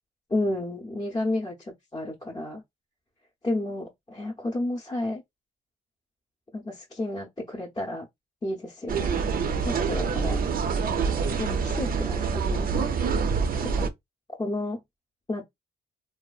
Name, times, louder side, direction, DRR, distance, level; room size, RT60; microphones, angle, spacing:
voice 1, 0.3-2.6 3.4-5.2 6.5-8.1 8.4-9.2 9.6-10.4 11.4-12.7 13.6-13.9 14.4-14.8 15.3-15.4, left 1 dB, 20° left, 0.6 m, -31 dB
sound 1, 8.9-13.9, right 5 dB, 45° right, 0.5 m, -26 dB
2.6 x 2.3 x 2.3 m
cardioid pair, 90°, 20 cm